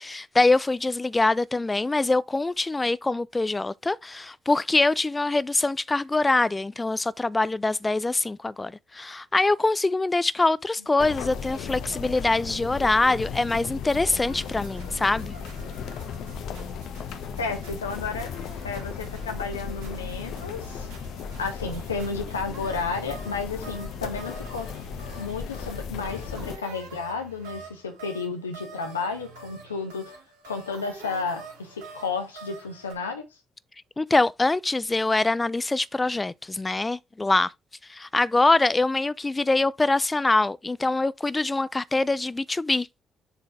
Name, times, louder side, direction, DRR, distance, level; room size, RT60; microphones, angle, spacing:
voice 1, 0.0-15.3 34.0-37.5 37.9-42.9, left 2 dB, 20° left, 0.3 m, -24 dB
sound 1, 11.0-26.6, left 6 dB, 65° left, 0.8 m, -36 dB
sound 2, 14.3-32.9, right 4 dB, 75° right, 3.9 m, -47 dB
voice 2, 17.4-18.3 18.6-20.9 21.4-24.7 25.2-30.2 30.5-33.3, left 4 dB, 85° left, 1.2 m, -32 dB
7.1 x 3.9 x 3.6 m
figure-of-eight pair, 45°, 0 cm